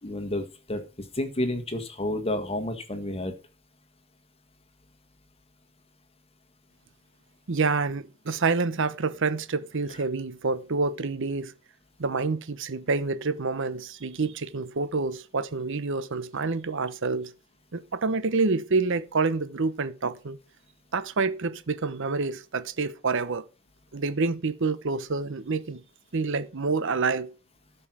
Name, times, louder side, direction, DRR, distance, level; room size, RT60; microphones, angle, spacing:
voice 1, 0.0-3.3, left 1 dB, 25° left, 1.5 m, -30 dB
voice 2, 7.5-11.5 12.0-17.3 17.7-20.4 20.9-23.4 23.9-25.8 26.1-27.3, right 4 dB, 60° right, 0.8 m, -27 dB
12.5 x 5.5 x 6.0 m
head